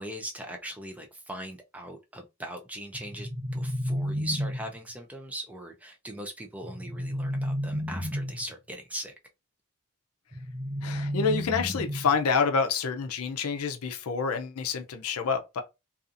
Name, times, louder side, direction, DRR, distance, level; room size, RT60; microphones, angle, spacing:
voice 1, 0.0-9.1, right 1 dB, 5° right, 0.3 m, -40 dB
sound 1, 2.9-4.9 6.6-8.5 10.3-12.3, equal, 30° right, 0.8 m, -32 dB
voice 2, 10.8-15.6, left 5 dB, 80° left, 0.5 m, -28 dB
2.6 x 2.4 x 2.5 m
head